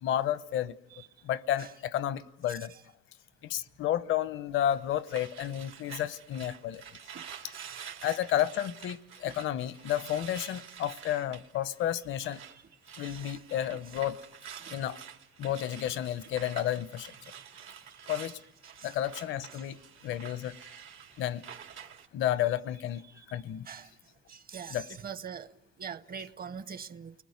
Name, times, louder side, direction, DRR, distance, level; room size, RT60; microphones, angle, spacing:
voice 1, 0.0-0.8 1.2-2.7 3.4-6.8 7.4-7.5 8.0-12.4 13.0-14.2 14.7-15.0 15.4-17.1 18.1-18.4 18.8-20.6 21.2-21.4 22.1-23.0 23.3-23.7 24.7-24.9, left 11 dB, 80° left, 0.9 m, -31 dB
sound 1, 4.6-12.6 12.8-22.1, right 8 dB, 85° right, 2.6 m, -48 dB
voice 2, 24.3-24.8 25.0-27.1, right 7 dB, 50° right, 1.0 m, -42 dB
29.5 x 20.0 x 9.6 m
cardioid pair, 90°, 20 cm